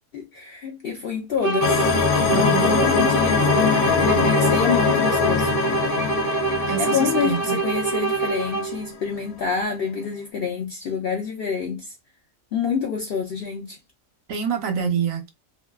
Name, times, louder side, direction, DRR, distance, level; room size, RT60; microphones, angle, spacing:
voice 1, 0.1-1.9 2.3-5.5 6.8-11.9 12.5-13.8, left 6 dB, 60° left, 0.6 m, -27 dB
sound 1, 1.4-8.9, right 5 dB, 55° right, 0.4 m, -25 dB
sound 2, 1.6-8.7, left 6 dB, 80° left, 1.0 m, -22 dB
voice 2, 2.2-3.1 6.7-7.6 14.3-15.3, right 7 dB, 70° right, 1.1 m, -26 dB
2.6 x 2.3 x 2.2 m
omnidirectional pair, 1.5 m